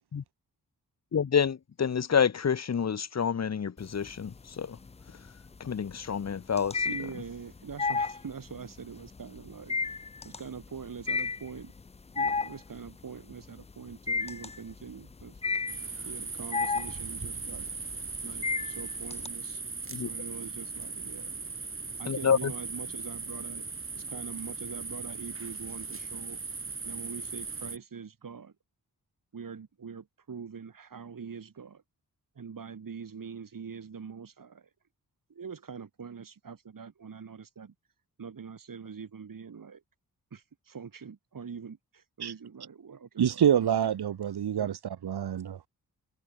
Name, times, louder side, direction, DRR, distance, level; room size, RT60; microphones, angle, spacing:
voice 1, 1.1-4.8 5.6-6.9 19.9-20.1 22.1-22.5, left 7 dB, 45° left, 1.0 m, -28 dB
sound 1, 3.8-4.4 4.8-19.3, left 4 dB, 20° left, 0.3 m, -33 dB
voice 2, 6.9-9.8 10.2-11.7 12.2-15.4 16.0-17.7 18.2-19.7 19.9-21.3 22.0-23.7 23.9-26.4 26.8-28.5 29.3-31.8 32.4-34.7 35.3-37.7 38.2-39.8 40.3-43.7 44.6-44.8, right 6 dB, 60° right, 5.4 m, -43 dB
sound 2, 15.7-27.8, right 4 dB, 35° right, 4.5 m, -38 dB
voice 3, 43.2-45.6, right 9 dB, 85° right, 1.3 m, -27 dB
wide cardioid pair, 170°, 38 cm